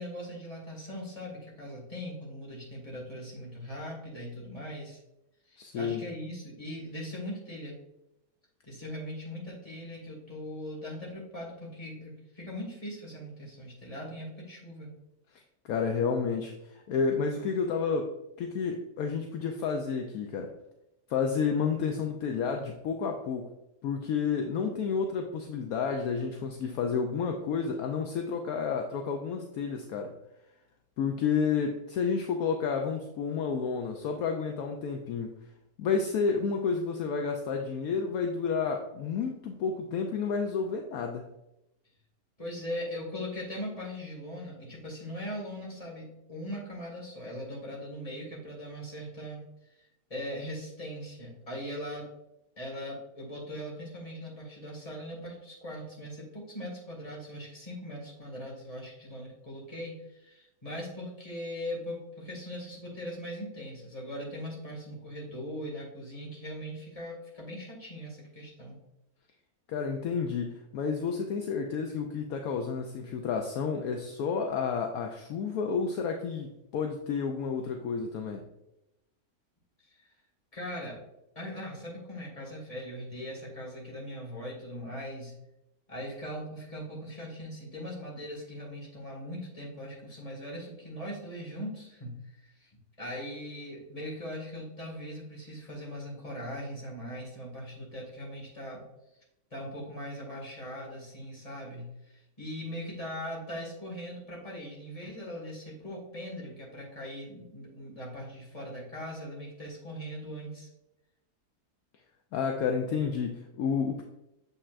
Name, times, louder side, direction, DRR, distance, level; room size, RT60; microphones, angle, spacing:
voice 1, 0.0-5.0 5.5-7.8 8.7-14.9 42.4-49.4 49.7-49.8 50.1-52.1 52.6-68.8 79.9-80.1 80.5-81.0 81.4-85.3 85.9-92.7 93.0-98.8 99.5-110.7, equal, 20° left, -3 dB, 2.0 m, -40 dB
voice 2, 5.6-6.0 15.3-20.5 21.1-23.5 23.8-30.1 31.0-35.4 35.8-41.2 69.7-78.4 112.3-114.0, left 5 dB, 70° left, 3 dB, 1.0 m, -30 dB
7.0 x 5.4 x 2.5 m, 0.88 s
omnidirectional pair, 1.8 m